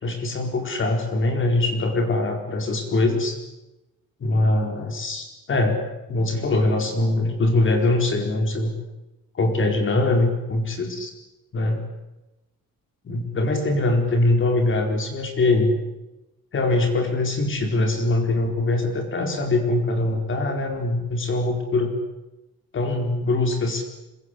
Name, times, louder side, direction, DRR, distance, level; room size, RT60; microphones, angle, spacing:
voice 1, 0.0-3.4 4.2-5.8 6.1-8.7 9.3-11.1 11.5-11.9 13.0-15.8 16.5-21.9 22.7-23.8, left 2 dB, 35° left, 4 dB, 4.5 m, -22 dB
26.5 x 24.0 x 8.4 m, 0.99 s
cardioid pair, 180°, 36 cm